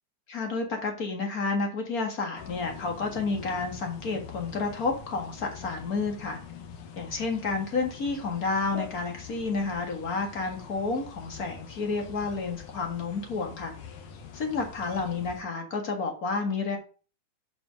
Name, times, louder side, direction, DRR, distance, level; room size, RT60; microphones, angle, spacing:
voice 1, 0.3-6.4 7.0-13.7 14.3-16.8, left 4 dB, 35° left, 1.8 m, -30 dB
sound 1, 2.4-15.4, left 7 dB, 80° left, 2.8 m, -45 dB
7.5 x 5.2 x 6.3 m
omnidirectional pair, 3.5 m